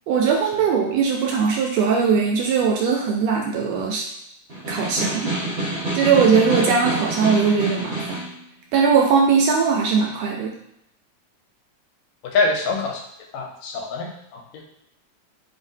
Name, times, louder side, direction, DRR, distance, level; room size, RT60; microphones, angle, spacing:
voice 1, 0.1-4.0 4.7-5.3 5.9-8.2 8.7-10.5, right 6 dB, 80° right, 1 dB, 1.6 m, -20 dB
Snare drum, 4.5-8.3, right 2 dB, 50° right, 0.8 m, -27 dB
voice 2, 12.2-13.0 13.3-14.6, left 3 dB, 80° left, 2 dB, 1.8 m, -25 dB
5.4 x 2.6 x 2.7 m, 0.78 s
omnidirectional pair, 3.3 m